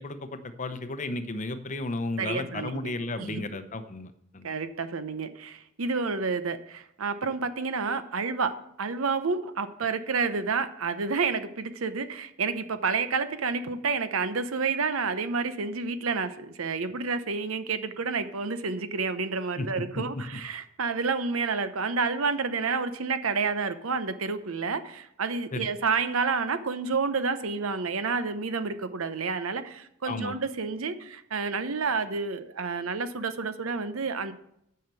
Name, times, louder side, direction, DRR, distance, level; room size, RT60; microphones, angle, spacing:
voice 1, 0.0-4.5 19.6-19.7 19.9-20.2 25.5-25.7 30.0-30.4, left 2 dB, 35° left, 10 dB, 0.7 m, -34 dB
voice 2, 2.2-2.9 3.2-3.4 4.4-8.5 8.8-34.3, right 4 dB, 80° right, 11 dB, 0.8 m, -29 dB
9.2 x 5.8 x 6.7 m, 0.75 s
head